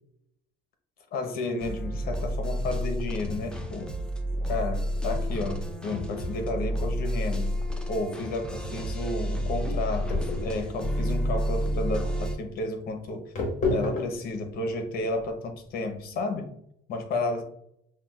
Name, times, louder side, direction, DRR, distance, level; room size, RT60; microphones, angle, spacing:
voice 1, 1.1-4.0 4.5-7.5 7.9-13.3 13.7-16.5 16.9-17.4, left 2 dB, 60° left, 6 dB, 0.8 m, -32 dB
sound 1, 1.6-12.3, equal, 5° left, 0.6 m, -30 dB
sound 2, 4.6-16.0, left 2 dB, 45° left, 1.2 m, -36 dB
5.9 x 2.2 x 2.3 m, 0.73 s
cardioid pair, 110°, 17 cm